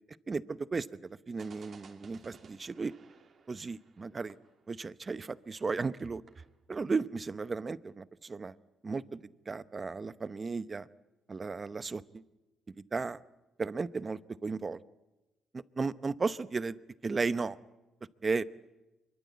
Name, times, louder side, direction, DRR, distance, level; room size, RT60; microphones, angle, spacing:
voice 1, 0.3-0.9 1.3-2.9 3.5-4.4 4.7-6.2 6.7-8.5 8.8-9.2 9.5-10.9 11.3-12.2 12.9-13.2 13.6-14.8 15.8-16.8 17.0-17.6 18.2-18.4, right 4 dB, 30° right, 16 dB, 0.9 m, -34 dB
sound 1, 1.4-5.7 6.0-6.1 6.3-6.5, right 5 dB, 50° right, 3.0 m, -58 dB
25.0 x 23.5 x 8.4 m, 1.0 s
cardioid pair, 90°, 0 cm